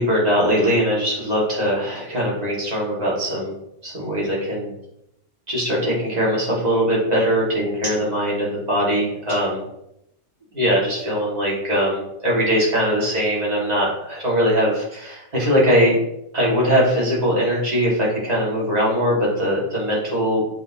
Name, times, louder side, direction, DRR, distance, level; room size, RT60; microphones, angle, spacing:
voice 1, 0.0-3.5 3.8-4.7 5.5-9.6 10.5-15.9 16.3-20.4, equal, 35° right, -5 dB, 2.4 m, -21 dB
7.2 x 6.3 x 3.0 m, 0.82 s
omnidirectional pair, 1.3 m